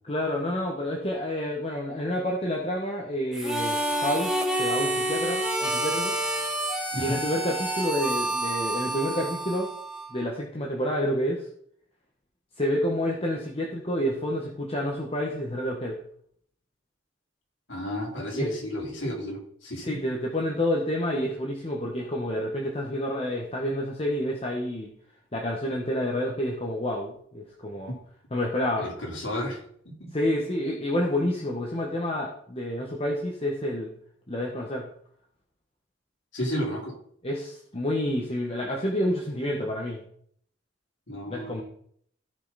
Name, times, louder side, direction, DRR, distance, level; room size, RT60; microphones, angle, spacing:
voice 1, 0.0-6.1 6.9-9.7 10.1-11.4 12.6-16.0 18.3-18.5 19.8-24.9 25.3-27.9 28.3-28.9 30.1-33.9 34.3-34.9 37.2-40.0 41.3-41.6, left 1 dB, 30° left, -1 dB, 1.5 m, -29 dB
Harmonica, 3.3-10.3, right 1 dB, 5° right, 1.7 m, -28 dB
voice 2, 17.7-20.0 28.8-30.1 36.3-36.9 41.1-41.6, equal, 75° left, -3 dB, 4.0 m, -32 dB
16.0 x 5.7 x 4.3 m, 0.64 s
head